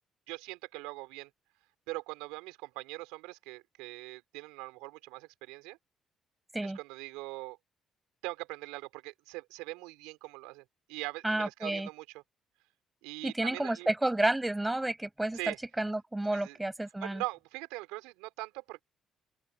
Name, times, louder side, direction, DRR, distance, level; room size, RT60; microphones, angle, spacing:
voice 1, 0.3-1.3 1.9-5.8 6.6-7.6 8.2-10.6 10.9-12.0 13.0-13.9 15.3-15.6 16.3-16.6 17.0-18.8, right 23 dB, 80° right, 4.0 m, -41 dB
voice 2, 11.2-11.9 13.2-17.2, right 1 dB, 15° right, 7.3 m, -31 dB
hypercardioid pair, 55°, 0 cm